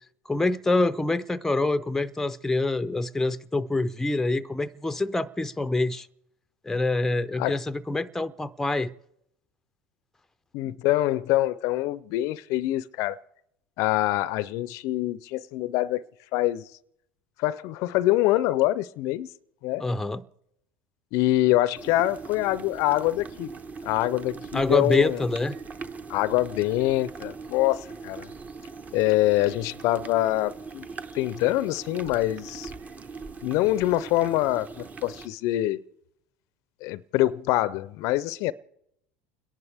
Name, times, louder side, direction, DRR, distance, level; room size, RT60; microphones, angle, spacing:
voice 1, 0.3-6.1 6.6-8.9 19.8-20.2 24.5-25.5, left 2 dB, 5° left, 0.5 m, -26 dB
voice 2, 10.5-13.2 13.8-16.1 16.3-16.7 17.4-19.3 19.6-19.8 21.1-23.5 23.8-25.2 26.1-28.3 28.9-30.9 31.1-32.7 33.4-35.8 36.8-38.5, left 16 dB, 60° left, 0.5 m, -25 dB
sound 1, 21.8-35.3, right 4 dB, 25° right, 0.9 m, -41 dB
30.0 x 11.0 x 3.4 m
supercardioid pair, 95°, 6 cm